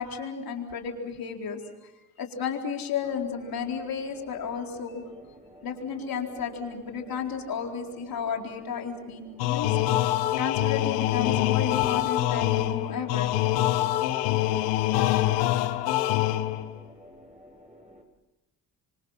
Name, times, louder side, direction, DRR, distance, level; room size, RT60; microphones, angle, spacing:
voice 1, 0.0-1.7 2.2-5.0 5.6-9.8 10.4-13.3, left 6 dB, 65° left, 2 dB, 4.4 m, -32 dB
sound 1, 3.0-18.0, equal, 20° right, 7.7 m, -52 dB
sound 2, 9.4-16.8, left 14 dB, 90° left, 1.1 m, -25 dB
27.5 x 25.5 x 5.8 m, 1.0 s
supercardioid pair, 55°, 38 cm